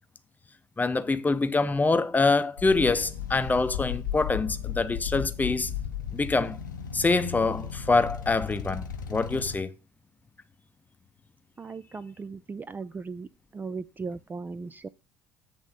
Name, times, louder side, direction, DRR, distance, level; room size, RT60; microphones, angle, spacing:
voice 1, 0.8-5.7 6.1-6.6 6.9-8.8 9.1-9.7, left 3 dB, 15° left, 0.7 m, -25 dB
sound 1, 2.6-9.6, left 8 dB, 80° left, 0.8 m, -35 dB
voice 2, 11.6-13.3 13.5-14.9, right 4 dB, 20° right, 0.3 m, -37 dB
8.2 x 3.6 x 6.4 m
figure-of-eight pair, 60°, 10 cm